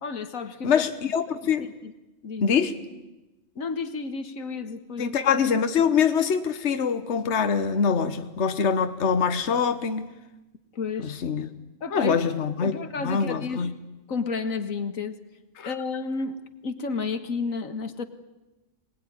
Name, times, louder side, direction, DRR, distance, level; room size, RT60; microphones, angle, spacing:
voice 1, 0.0-0.8 1.6-1.9 2.2-2.6 3.6-5.2 10.7-11.2 11.8-12.2 12.6-13.7 14.1-15.2 15.6-18.0, left 4 dB, 85° left, 1.9 m, -32 dB
voice 2, 0.6-1.7 2.4-2.8 5.0-10.1 11.0-11.5 11.9-12.8 13.0-13.7 15.6-15.7, left 6 dB, 60° left, 1.4 m, -24 dB
24.0 x 19.5 x 9.9 m
omnidirectional pair, 1.4 m